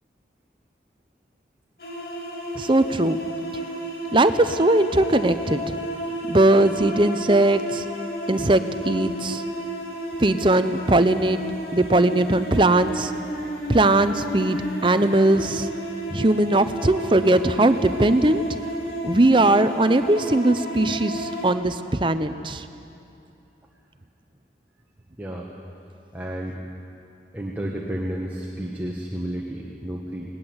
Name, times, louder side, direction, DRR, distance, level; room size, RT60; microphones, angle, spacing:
sound 1, 1.8-21.5, right 1 dB, 55° left, 2.7 m, -32 dB
voice 1, 2.6-3.2 4.1-5.6 6.2-7.8 8.3-9.4 10.2-11.4 11.7-13.1 13.7-15.7 16.1-18.4 19.0-22.6, right 2 dB, 30° right, 11 dB, 0.7 m, -19 dB
voice 2, 25.2-25.5 26.1-26.6 27.3-30.3, right 1 dB, 10° right, -2 dB, 1.6 m, -31 dB
20.0 x 19.0 x 8.0 m, 2.7 s
head